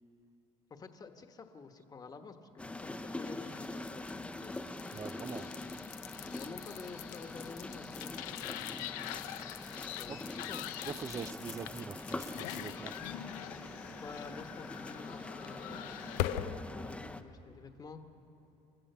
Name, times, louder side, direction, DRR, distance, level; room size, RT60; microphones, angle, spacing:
voice 1, 0.7-4.6 6.3-8.9 9.8-10.7 14.0-16.0 16.5-18.0, left 4 dB, 30° left, 1.3 m, -50 dB
sound 1, 2.6-17.2, left 2 dB, 10° left, 0.7 m, -44 dB
sound 2, 3.0-16.6, left 12 dB, 85° left, 0.7 m, -43 dB
voice 2, 4.9-5.5 10.1-10.2 10.8-13.0, right 6 dB, 25° right, 0.4 m, -43 dB
29.5 x 14.0 x 6.8 m
cardioid pair, 105°, 13 cm